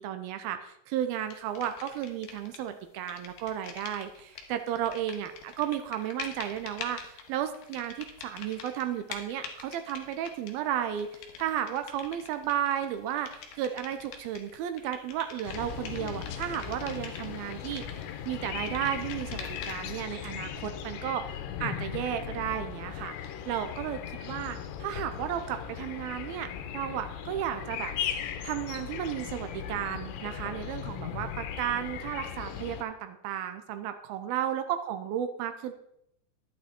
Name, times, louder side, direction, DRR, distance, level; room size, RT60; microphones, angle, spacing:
voice 1, 0.0-11.1 11.4-21.2 21.6-23.1 23.5-27.9 28.4-35.7, right 10 dB, 80° right, 9 dB, 2.2 m, -33 dB
sound 1, 1.3-2.7 3.0-20.0, left 6 dB, 65° left, 2.6 m, -45 dB
sound 2, 15.5-32.8, left 9 dB, 80° left, 3.1 m, -38 dB
11.5 x 9.1 x 4.4 m, 0.75 s
omnidirectional pair, 5.0 m